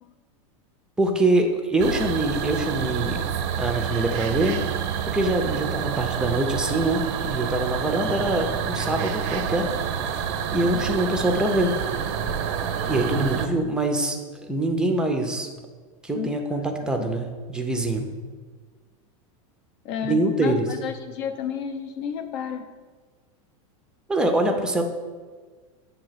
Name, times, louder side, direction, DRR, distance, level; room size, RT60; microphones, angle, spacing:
voice 1, 1.0-3.2 3.6-4.6 5.0-9.7 10.1-10.2 10.5-11.7 12.9-14.2 14.5-15.5 16.0-18.1 20.0-20.7 24.1-24.8, right 1 dB, 5° right, 4 dB, 0.5 m, -24 dB
sound 1, 1.8-13.5, right 8 dB, 55° right, 0.5 m, -28 dB
voice 2, 16.1-16.6 17.0-17.1 19.8-22.6, left 7 dB, 55° left, 7 dB, 0.7 m, -32 dB
7.7 x 2.8 x 5.7 m, 1.5 s
supercardioid pair, 145°, 18 cm